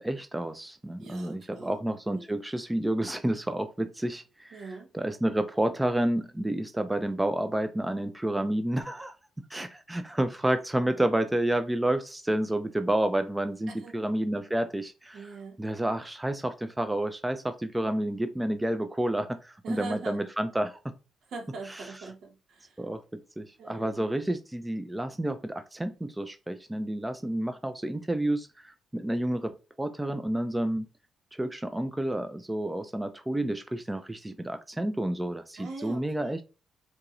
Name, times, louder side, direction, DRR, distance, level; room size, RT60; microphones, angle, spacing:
voice 1, 0.0-9.1 9.5-15.3 15.6-20.8 22.8-23.0 23.4-29.5 29.8-30.9 31.3-36.4, right 1 dB, 10° right, 0.5 m, -30 dB
voice 2, 1.0-1.8 2.1-2.3 4.5-4.9 13.7-13.9 15.1-15.6 19.6-20.2 21.3-22.8 23.6-24.2 35.6-36.4, right 3 dB, 70° right, 1.1 m, -42 dB
4.5 x 2.8 x 2.5 m
supercardioid pair, 65°, 0 cm